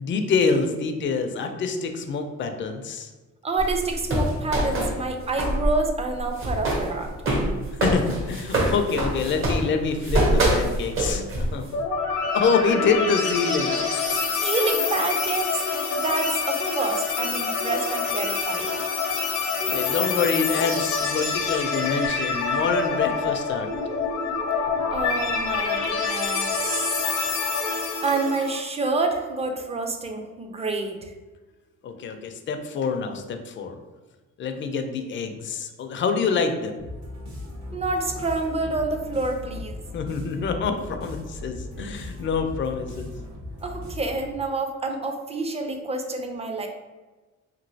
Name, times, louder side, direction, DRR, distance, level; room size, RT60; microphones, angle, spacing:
voice 1, 0.0-3.1 7.8-11.6 12.3-13.8 19.7-23.7 31.8-33.8 34.4-36.8 39.9-43.1, left 5 dB, 40° left, 6 dB, 0.4 m, -26 dB
voice 2, 3.4-7.1 14.3-15.6 15.9-18.7 24.9-26.6 28.0-31.1 37.7-39.8 43.6-46.7, right 3 dB, 20° right, 4 dB, 0.4 m, -28 dB
sound 1, 3.6-5.7 6.0-11.7, right 1 dB, 45° right, 0.8 m, -24 dB
sound 2, 11.7-28.6, left 5 dB, 75° left, 0.7 m, -26 dB
sound 3, 36.8-44.5, left 2 dB, 65° right, 1.2 m, -38 dB
3.0 x 2.7 x 2.7 m, 1.2 s
cardioid pair, 90°, 30 cm